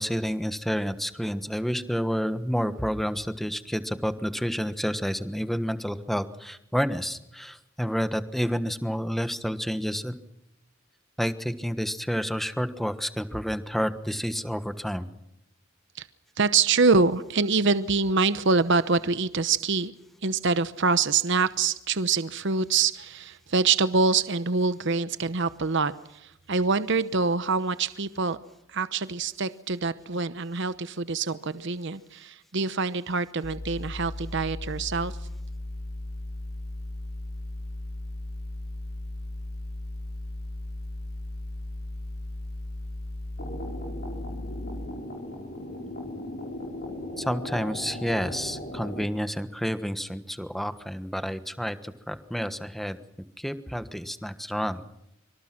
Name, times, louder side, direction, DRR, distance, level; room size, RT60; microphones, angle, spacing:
voice 1, 0.0-10.2 11.2-15.1 47.2-53.0 53.4-54.8, equal, ahead, 11 dB, 1.3 m, -29 dB
voice 2, 16.4-19.9 20.2-28.4 28.7-35.1, right 4 dB, 60° right, 13 dB, 0.9 m, -25 dB
sound 1, 33.4-44.9, left 1 dB, 85° left, 1.3 m, -36 dB
sound 2, 43.4-49.0, left 1 dB, 50° left, 4.8 m, -37 dB
25.5 x 25.0 x 6.0 m, 0.84 s
head